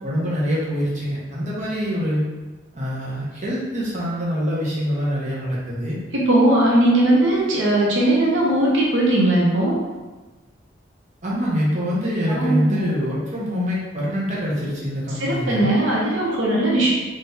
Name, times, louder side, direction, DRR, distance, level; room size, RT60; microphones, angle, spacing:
voice 1, 0.0-2.2 2.7-6.0 11.2-15.7, equal, 40° right, -6 dB, 0.9 m, -24 dB
voice 2, 6.1-9.8 12.3-12.8 15.2-16.9, right 1 dB, 80° right, -4 dB, 0.8 m, -19 dB
3.6 x 3.3 x 2.7 m, 1.2 s
head